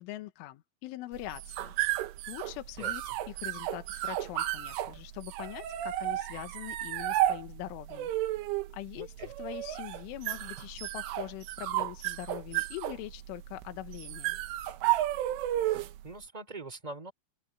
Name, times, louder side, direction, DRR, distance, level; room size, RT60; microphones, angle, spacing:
voice 1, 0.0-8.1 8.7-14.4, left 16 dB, 80° left, 3.6 m, -43 dB
sound 1, 1.2-16.1, right 14 dB, 85° right, 3.8 m, -33 dB
voice 2, 9.0-9.3 16.0-17.1, right 2 dB, 10° right, 2.2 m, -43 dB
open air
omnidirectional pair, 5.6 m